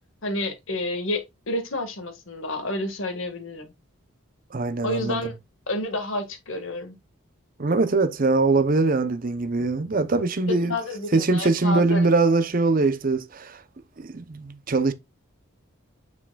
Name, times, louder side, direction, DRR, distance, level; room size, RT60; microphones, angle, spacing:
voice 1, 0.2-3.7 4.8-5.4 5.7-7.0 10.5-12.1, left 1 dB, 70° left, 1.7 m, -30 dB
voice 2, 4.5-5.2 7.6-10.8 11.1-13.6 14.0-14.9, right 3 dB, 40° right, 0.6 m, -22 dB
7.3 x 5.8 x 2.3 m
head